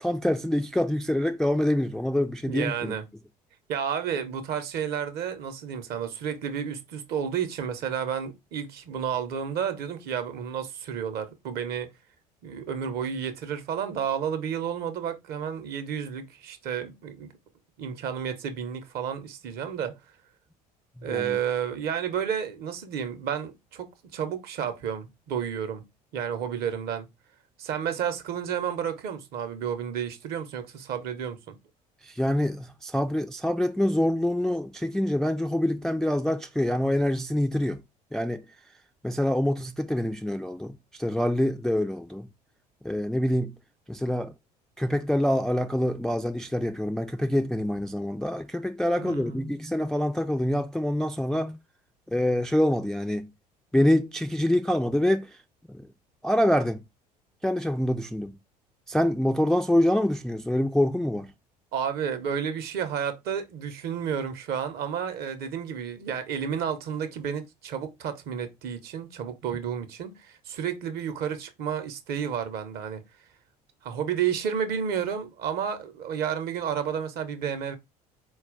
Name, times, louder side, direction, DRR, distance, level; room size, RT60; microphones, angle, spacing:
voice 1, 0.0-2.9 21.0-21.4 32.1-37.8 38.1-38.5 39.0-42.3 42.8-43.5 43.9-44.3 44.8-51.6 52.1-53.3 53.7-55.3 55.7-55.9 56.2-56.8 57.4-58.4 58.9-61.3, left 1 dB, ahead, 0.3 m, -26 dB
voice 2, 2.4-3.0 3.7-11.9 12.4-17.3 17.8-20.0 21.0-25.8 26.1-27.1 27.6-31.5 48.9-49.4 61.7-73.0 73.8-77.8, right 8 dB, 50° right, 0.8 m, -31 dB
4.3 x 2.3 x 3.7 m
figure-of-eight pair, 60°, 21 cm